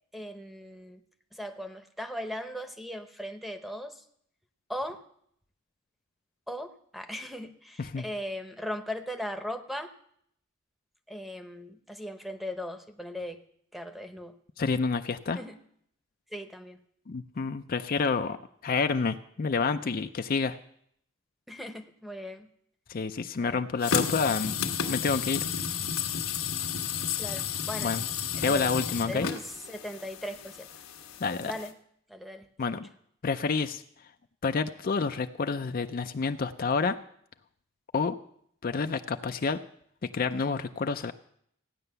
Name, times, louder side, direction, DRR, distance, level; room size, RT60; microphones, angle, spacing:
voice 1, 0.1-1.0 1.3-4.0 4.7-5.0 6.5-9.9 11.1-13.4 13.7-14.3 15.3-15.6 16.3-16.8 21.5-22.5 23.4-23.7 27.2-27.9 28.3-28.7 29.1-30.7 31.4-31.7 32.1-32.5, equal, ahead, 7 dB, 0.9 m, -38 dB
voice 2, 14.6-15.4 17.1-18.4 18.6-20.6 22.9-24.5 24.9-25.5 27.8-28.0 28.4-29.3 31.2-31.5 32.6-32.9 33.2-33.8 34.4-37.0 37.9-38.2 38.6-39.6 40.0-41.1, left 4 dB, 45° left, 8 dB, 0.5 m, -28 dB
sound 1, 23.8-31.7, left 7 dB, 90° left, 1.3 m, -32 dB
15.5 x 9.9 x 6.8 m, 0.69 s
head